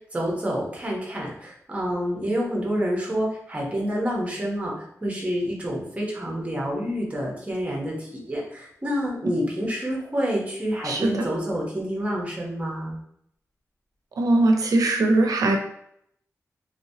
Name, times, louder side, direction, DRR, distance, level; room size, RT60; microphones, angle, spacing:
voice 1, 0.1-4.7 5.0-13.0, equal, 20° right, -2 dB, 1.0 m, -28 dB
voice 2, 10.8-11.2 14.2-15.6, right 2 dB, 80° right, 3 dB, 0.6 m, -20 dB
3.1 x 3.0 x 2.8 m, 0.71 s
wide cardioid pair, 145°, 6 cm